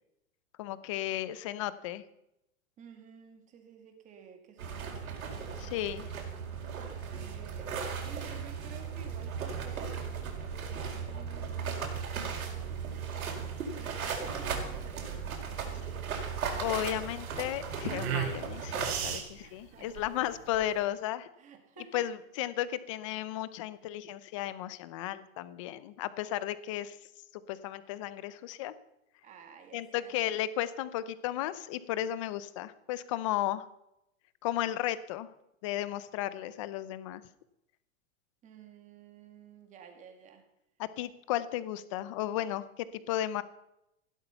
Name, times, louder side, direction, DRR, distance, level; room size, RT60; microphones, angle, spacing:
voice 1, 0.6-2.0 5.6-6.1 16.6-21.3 21.9-27.0 27.5-28.7 29.7-33.6 34.4-35.3 35.6-37.2 40.8-43.4, left 13 dB, 25° left, 16 dB, 0.6 m, -34 dB
voice 2, 2.8-6.2 7.2-13.1 13.8-15.2 15.4-16.2 19.4-20.5 21.4-22.1 29.2-30.4 38.4-40.4, right 7 dB, 20° right, 5 dB, 2.0 m, -53 dB
sound 1, 4.6-19.2, right 6 dB, 85° right, 4.7 m, -37 dB
sound 2, 12.8-20.8, right 8 dB, 50° right, 3.3 m, -39 dB
16.0 x 12.0 x 5.6 m, 0.83 s
supercardioid pair, 165°, 41 cm